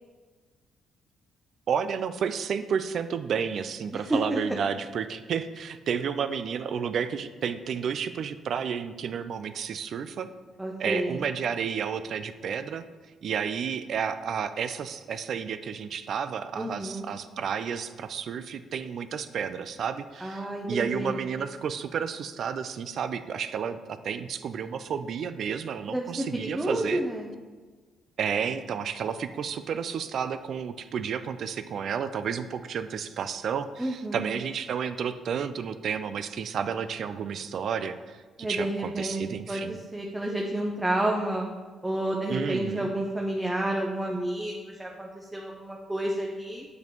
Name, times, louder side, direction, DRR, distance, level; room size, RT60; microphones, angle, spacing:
voice 1, 1.7-10.3 10.8-12.8 13.2-27.0 28.2-38.2 38.5-39.8 42.3-42.9, right 7 dB, 65° right, 11 dB, 0.3 m, -31 dB
voice 2, 3.9-4.6 10.6-11.2 16.6-17.1 20.2-21.2 25.9-27.3 33.8-34.3 38.4-39.2 39.5-41.5 41.8-46.7, right 1 dB, 10° right, 0 dB, 0.7 m, -30 dB
8.1 x 5.1 x 3.1 m, 1.4 s
cardioid pair, 90°, 0 cm